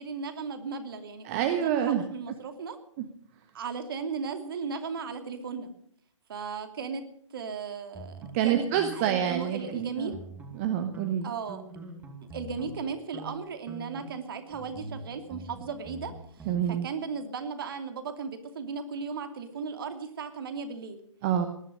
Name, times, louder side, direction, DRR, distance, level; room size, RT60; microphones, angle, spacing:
voice 1, 0.0-2.8 3.5-5.7 6.3-7.0 7.3-8.7 8.9-10.2 11.2-11.6 12.3-21.0, right 5 dB, 45° right, 7 dB, 2.7 m, -36 dB
voice 2, 1.2-2.0 8.3-10.1 10.6-11.3 16.5-16.9 21.2-21.5, right 10 dB, 25° right, 7 dB, 1.3 m, -27 dB
sound 1, 7.9-9.8 10.1-10.7 10.9-12.8 13.1-13.4 13.7-16.7, right 2 dB, 10° right, 2.3 m, -44 dB
19.0 x 11.0 x 6.6 m, 0.66 s
figure-of-eight pair, 130°, 16 cm